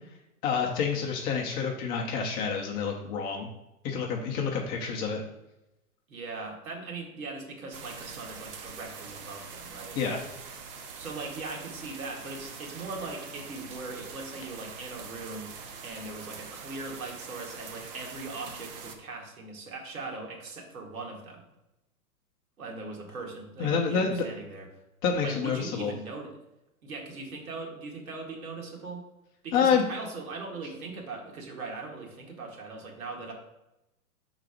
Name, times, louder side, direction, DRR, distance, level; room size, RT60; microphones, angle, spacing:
voice 1, 0.4-3.5 3.8-5.2 9.9-10.2 23.6-24.2 25.0-25.9 29.5-29.8, left 6 dB, 20° left, 0 dB, 0.7 m, -28 dB
voice 2, 6.1-10.0 10.9-15.5 15.8-21.5 22.6-24.7 25.2-26.3 26.8-29.0 29.4-33.3, right 3 dB, 70° right, 0 dB, 2.0 m, -40 dB
sound 1, 7.7-18.9, right 5 dB, 40° right, 0.9 m, -44 dB
5.6 x 4.0 x 4.9 m, 0.91 s
hypercardioid pair, 120°, 44 cm